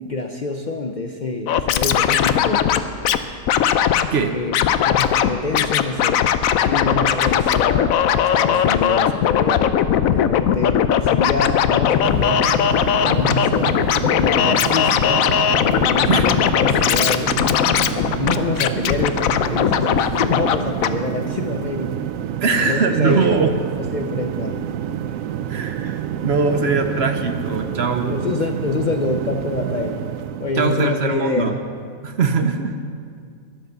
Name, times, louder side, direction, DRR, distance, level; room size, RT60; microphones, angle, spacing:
voice 1, 0.0-2.7 3.1-3.2 4.3-4.5 4.8-6.3 6.6-12.6 13.0-13.8 14.1-15.3 15.7-17.4 18.2-22.1 22.5-23.4 23.8-25.1 28.1-30.1 30.4-31.6, left 3 dB, 45° left, 4 dB, 0.6 m, -26 dB
Scratching (performance technique), 1.5-3.2 3.5-4.1 4.5-5.3 5.5-20.6 20.8-20.9, left 9 dB, 80° left, 1.0 m, -18 dB
sound 1, 12.0-30.6, right 10 dB, 75° right, 1.0 m, -28 dB
voice 2, 22.4-23.5 25.5-28.2 30.6-31.6 32.0-32.8, right 5 dB, 55° right, 7 dB, 1.0 m, -21 dB
12.5 x 10.5 x 6.9 m, 2.1 s
omnidirectional pair, 1.4 m